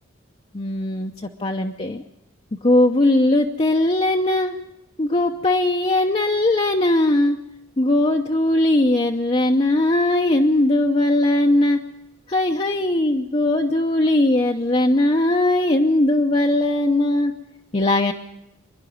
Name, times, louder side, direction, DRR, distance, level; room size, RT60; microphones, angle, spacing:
voice 1, 0.5-2.0 2.6-4.5 5.0-7.4 7.8-11.8 12.3-17.3 17.7-18.1, left 1 dB, 30° left, 2 dB, 0.7 m, -19 dB
25.5 x 11.0 x 9.4 m, 0.88 s
head